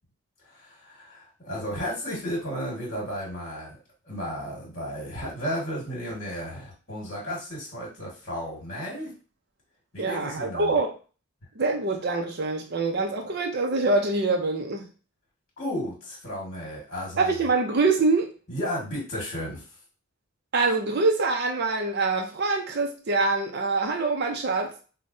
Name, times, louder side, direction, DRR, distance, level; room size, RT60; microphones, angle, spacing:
voice 1, 0.5-3.8 4.0-9.1 9.9-10.7 15.6-17.3 18.5-19.6, equal, 35° left, -4 dB, 1.6 m, -33 dB
voice 2, 10.0-10.9 11.6-14.9 17.2-18.3 20.5-24.7, right 3 dB, 50° right, 3 dB, 0.6 m, -25 dB
5.2 x 2.2 x 2.6 m, 0.35 s
head